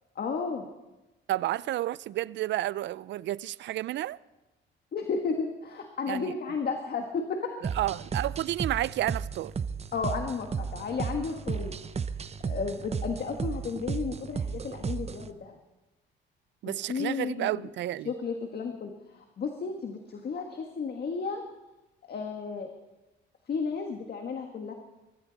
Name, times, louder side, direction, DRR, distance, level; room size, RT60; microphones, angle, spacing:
voice 1, 0.1-0.7 4.9-7.7 9.9-11.8 12.4-15.6 16.6-17.7 18.0-21.4 22.1-22.7 23.5-24.7, left 5 dB, 50° left, 1.6 m, -33 dB
voice 2, 1.3-4.2 6.1-6.3 7.6-9.5 16.6-18.1, right 14 dB, 65° right, 0.4 m, -31 dB
sound 1, 7.6-15.3, right 6 dB, 30° right, 0.7 m, -34 dB
22.5 x 13.5 x 4.1 m
cardioid pair, 90°, 20 cm